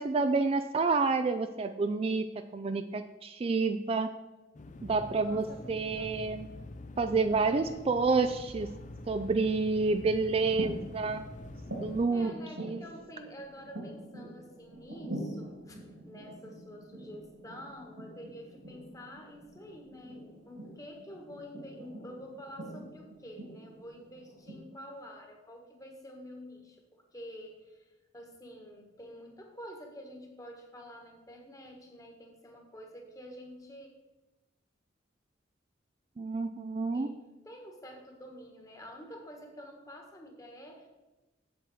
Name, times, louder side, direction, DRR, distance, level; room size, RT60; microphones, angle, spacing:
voice 1, 0.0-4.1 4.8-6.5 7.0-8.7 9.1-11.2 11.8-12.3 12.6-12.8 36.2-37.1, right 4 dB, 30° right, 9 dB, 0.3 m, -29 dB
sound 1, 4.5-12.1, left 2 dB, 40° left, 0.5 m, -46 dB
voice 2, 5.2-6.2 7.3-7.8 12.1-33.9 36.9-40.9, equal, 20° left, 2 dB, 1.4 m, -48 dB
sound 2, 10.3-24.6, right 1 dB, 90° right, 3.3 m, -45 dB
7.9 x 7.5 x 4.7 m, 1.1 s
head